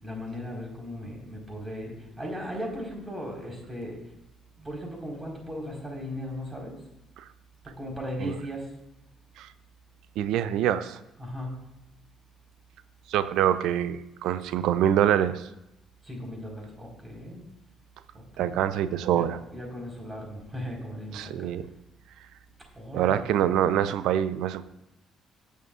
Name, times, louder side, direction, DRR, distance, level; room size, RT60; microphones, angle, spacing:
voice 1, 0.0-4.0 4.6-6.8 7.6-8.7 11.2-11.7 16.0-17.4 18.1-18.6 19.1-21.5 22.7-23.3, equal, 20° right, -1 dB, 4.6 m, -37 dB
voice 2, 10.2-11.0 13.1-15.5 18.4-19.4 21.1-21.6 22.9-24.6, right 10 dB, 65° right, 13 dB, 0.6 m, -25 dB
18.5 x 8.4 x 2.5 m, 0.89 s
figure-of-eight pair, 45°, 0 cm